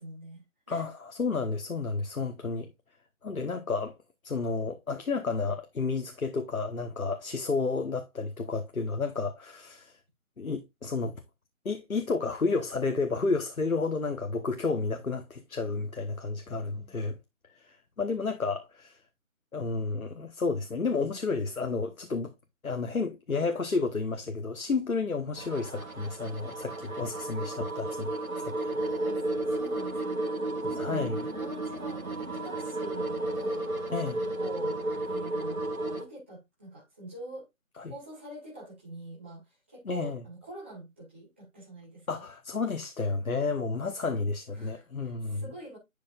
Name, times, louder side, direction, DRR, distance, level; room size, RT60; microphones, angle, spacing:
voice 1, 0.0-0.8 16.5-17.0 28.7-29.2 29.5-34.8 35.0-35.6 35.9-37.4 37.8-39.4 39.7-42.2 44.0-44.1 44.5-45.8, right 1 dB, 10° right, 1.3 m, -45 dB
voice 2, 0.7-2.7 3.2-4.0 4.2-10.0 10.4-11.2 11.6-17.2 17.5-19.0 19.5-22.3 22.6-28.7 30.7-31.3 33.9-34.2 37.8-37.9 39.8-40.2 42.1-45.4, left 4 dB, 80° left, 1.2 m, -31 dB
sound 1, 25.4-36.0, right 2 dB, 85° right, 2.2 m, -33 dB
10.5 x 5.2 x 2.4 m
figure-of-eight pair, 170°, 41 cm